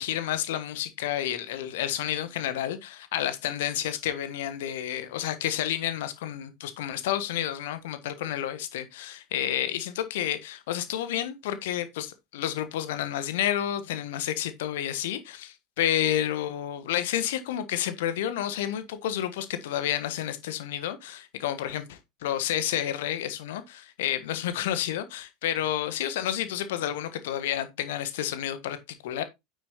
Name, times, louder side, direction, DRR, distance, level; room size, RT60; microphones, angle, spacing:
voice 1, 0.0-29.2, left 11 dB, 60° left, 1.3 m, -30 dB
9.2 x 7.5 x 2.8 m
figure-of-eight pair, 80°, 0 cm